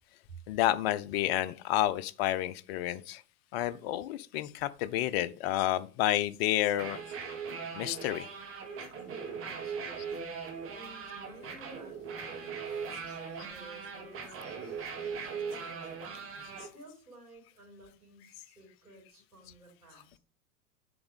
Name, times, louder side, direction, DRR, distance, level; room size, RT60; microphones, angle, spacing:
voice 1, 0.5-3.2 3.5-7.0 7.7-8.2, left 13 dB, 45° left, 0.6 m, -30 dB
sound 1, 6.7-16.7, right 5 dB, 30° right, 1.7 m, -40 dB
voice 2, 8.9-16.2 16.6-20.2, right 2 dB, 85° right, 3.9 m, -54 dB
7.0 x 4.5 x 5.1 m
figure-of-eight pair, 90°, 44 cm